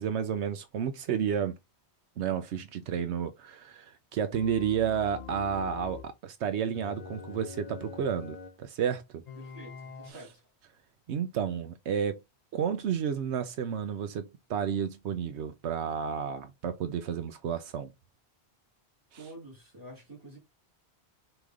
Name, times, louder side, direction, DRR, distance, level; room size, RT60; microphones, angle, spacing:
voice 1, 0.0-1.6 2.2-9.2 10.1-10.2 11.1-12.2 12.5-17.9, right 8 dB, 80° right, 0.9 m, -31 dB
sound 1, 4.3-6.1 6.7-8.6 9.3-10.1, left 6 dB, 50° left, 0.6 m, -44 dB
voice 2, 9.4-10.5 19.2-20.4, right 1 dB, 20° right, 2.3 m, -48 dB
4.9 x 3.0 x 3.6 m
omnidirectional pair, 1.1 m